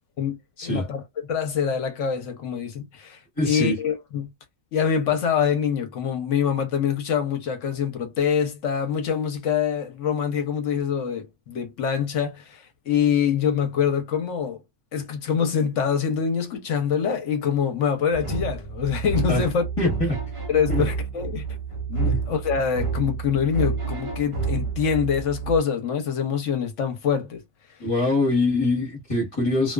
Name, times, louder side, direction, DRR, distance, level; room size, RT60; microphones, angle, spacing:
voice 1, 0.6-1.0 1.3-4.3 4.7-14.6 14.9-19.9 20.5-21.5 21.9-27.4, left 7 dB, 60° left, 0.9 m, -25 dB
voice 2, 3.4-3.8 19.3-19.4 19.8-20.2 20.7-20.8 22.0-22.2 27.8-29.7, left 2 dB, 20° left, 0.9 m, -23 dB
sound 1, 18.1-25.6, right 5 dB, 45° right, 0.4 m, -29 dB
2.4 x 2.3 x 2.2 m
omnidirectional pair, 1.6 m